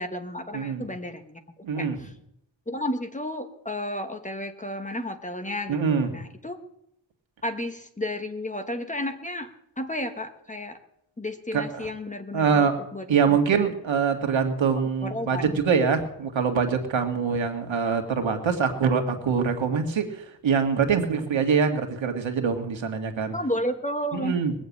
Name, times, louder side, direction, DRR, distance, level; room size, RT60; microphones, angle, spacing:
voice 1, 0.0-1.4 1.7-2.1 2.7-6.6 7.4-9.5 9.8-10.8 11.2-12.6 12.9-13.4 15.0-15.6 23.3-24.3, left 1 dB, 15° left, 7 dB, 1.1 m, -32 dB
voice 2, 1.6-2.0 5.7-6.1 11.5-11.9 12.3-12.8 13.1-23.3 24.1-24.5, right 6 dB, 80° right, 5 dB, 1.9 m, -24 dB
20.5 x 7.1 x 8.4 m, 0.77 s
wide cardioid pair, 155°, 45 cm